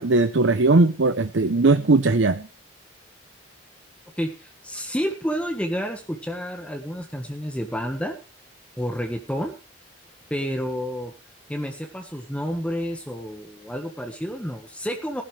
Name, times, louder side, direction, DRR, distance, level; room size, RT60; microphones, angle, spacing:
voice 1, 0.0-2.5, right 3 dB, 65° right, 11 dB, 0.8 m, -19 dB
voice 2, 4.2-8.2 8.8-9.5 10.3-11.1 11.5-15.2, equal, 5° left, 4 dB, 1.4 m, -30 dB
19.5 x 12.0 x 3.3 m, 0.32 s
head